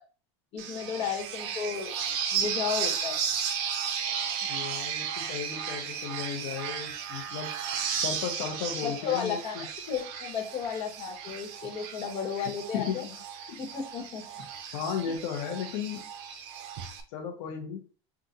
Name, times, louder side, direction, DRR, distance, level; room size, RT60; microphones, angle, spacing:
voice 1, 0.5-1.9 2.3-3.2 8.8-13.0 13.6-14.2, left 7 dB, 40° left, 2 dB, 1.3 m, -33 dB
sound 1, 0.6-17.0, right 7 dB, 65° right, 0.7 m, -34 dB
voice 2, 4.4-7.5 7.9-9.6 12.4-13.1 13.5-13.6 14.7-16.1 17.1-17.8, left 8 dB, 70° left, 1 dB, 0.8 m, -35 dB
5.8 x 2.4 x 2.6 m, 0.36 s
supercardioid pair, 140°, 15 cm